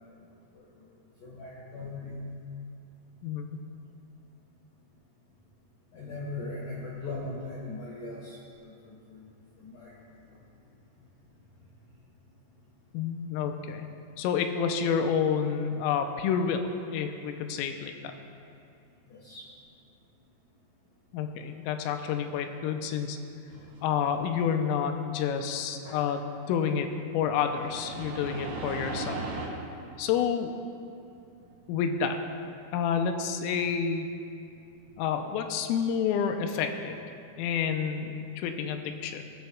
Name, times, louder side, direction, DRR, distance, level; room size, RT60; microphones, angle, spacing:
voice 1, 0.5-0.9 1.2-2.3 5.9-9.2 9.6-9.9 19.1-19.5 25.8-26.0, left 2 dB, 65° left, -4 dB, 2.3 m, -40 dB
voice 2, 3.2-3.6 12.9-13.9 14.2-18.1 21.1-23.2 23.8-26.9 27.1-29.2 30.0-30.5 31.7-32.2 32.7-34.1 35.0-37.0 37.4-39.2, left 7 dB, 85° left, 6 dB, 3.3 m, -29 dB
sound 1, 23.5-24.6 27.4-29.5, right 2 dB, 65° right, 3.8 m, -37 dB
20.0 x 13.0 x 2.4 m, 2.5 s
omnidirectional pair, 5.8 m